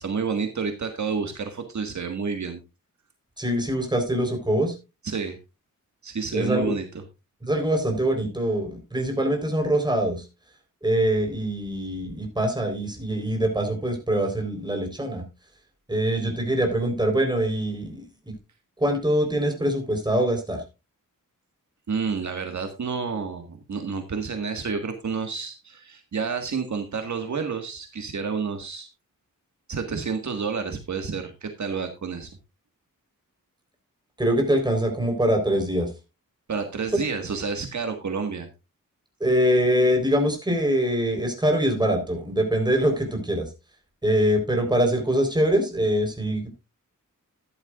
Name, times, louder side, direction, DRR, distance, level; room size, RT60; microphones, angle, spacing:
voice 1, 0.0-2.6 5.0-5.4 6.0-6.8 21.9-28.9 29.7-32.3 36.5-38.5, right 5 dB, 60° right, 5 dB, 1.7 m, -29 dB
voice 2, 3.4-4.7 6.3-6.7 7.4-10.3 10.8-15.2 15.9-18.0 18.8-20.6 34.2-35.9 39.2-43.5 44.0-46.5, right 1 dB, 15° right, 3 dB, 4.0 m, -23 dB
13.5 x 11.0 x 2.4 m, 0.27 s
wide cardioid pair, 150°, 33 cm